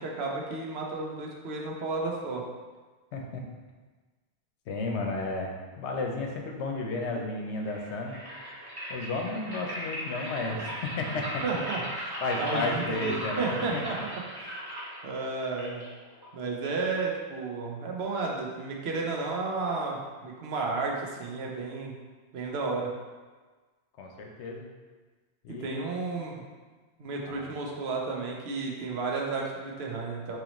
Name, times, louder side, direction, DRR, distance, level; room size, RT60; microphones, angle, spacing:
voice 1, 0.0-2.4 10.5-10.6 11.4-14.5 15.0-15.9 16.3-22.0 22.3-22.9 25.6-26.4 27.0-30.4, right 3 dB, 70° right, -1 dB, 0.9 m, -32 dB
voice 2, 3.1-3.4 4.7-8.2 8.9-11.4 12.2-13.8 24.0-24.6 25.4-25.8 27.3-27.5, left 2 dB, 85° left, 1 dB, 0.9 m, -33 dB
sound 1, 7.5-16.6, equal, 20° right, 1.1 m, -38 dB
3.9 x 3.0 x 3.0 m, 1.4 s
omnidirectional pair, 1.1 m